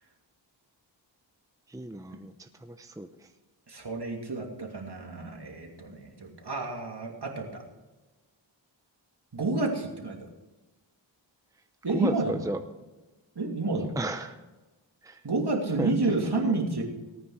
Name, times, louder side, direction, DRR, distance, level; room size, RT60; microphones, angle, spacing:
voice 1, 1.7-3.3 11.9-12.6 13.8-14.4 15.0-15.2 15.8-15.9 16.4-16.5, right 1 dB, 5° right, 7 dB, 0.8 m, -34 dB
voice 2, 3.7-7.6 9.3-10.3 11.8-12.4 13.4-13.9 15.2-16.8, right 3 dB, 60° right, 1 dB, 2.9 m, -30 dB
18.5 x 9.3 x 4.9 m, 1.1 s
wide cardioid pair, 75°, 45 cm